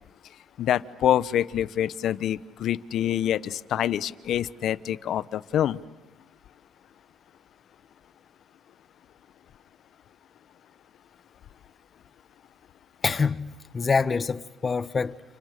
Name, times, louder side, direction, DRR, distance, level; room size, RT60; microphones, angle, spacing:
voice 1, 0.6-5.8, left 11 dB, 65° left, 1.1 m, -26 dB
voice 2, 13.0-15.2, left 5 dB, 30° left, 1.3 m, -26 dB
30.0 x 29.0 x 6.7 m
cardioid pair, 95°, 0 cm